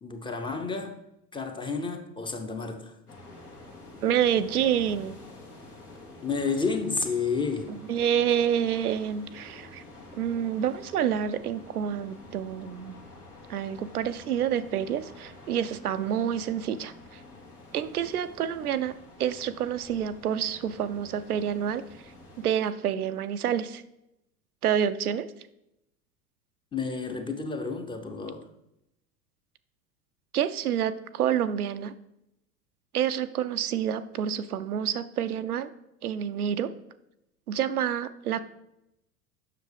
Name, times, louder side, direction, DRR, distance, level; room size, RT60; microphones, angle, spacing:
voice 1, 0.0-1.0 1.3-2.9 6.2-7.7 26.7-28.4, left 4 dB, 10° left, 5 dB, 0.6 m, -31 dB
sound 1, 3.1-22.5, left 2 dB, 85° left, 1.7 m, -48 dB
voice 2, 4.0-5.2 7.9-9.8 10.2-12.9 13.5-17.2 17.7-21.8 22.4-23.8 24.6-25.3 30.3-31.9 32.9-35.7 36.0-36.7 37.5-38.4, right 9 dB, 80° right, 11 dB, 0.5 m, -28 dB
7.5 x 5.9 x 3.4 m, 0.84 s
figure-of-eight pair, 80°, 44 cm